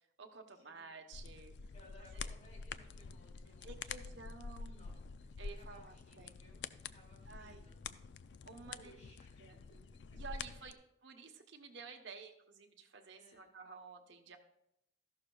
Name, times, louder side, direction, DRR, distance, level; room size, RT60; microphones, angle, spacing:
voice 1, 0.2-1.5 2.1-2.3 3.6-4.9 5.4-6.4 7.3-7.7 8.4-8.9 9.4-9.6 10.1-10.7 11.0-14.4, right 4 dB, 85° right, 4 dB, 1.0 m, -52 dB
sound 1, 1.1-10.7, left 5 dB, 75° left, 0.4 m, -48 dB
voice 2, 1.7-3.8 4.6-4.9 5.2-6.6 6.9-7.8 8.5-10.2 11.5-11.7 13.2-13.5, equal, 35° left, -3 dB, 3.4 m, -63 dB
13.5 x 11.5 x 2.3 m, 0.81 s
head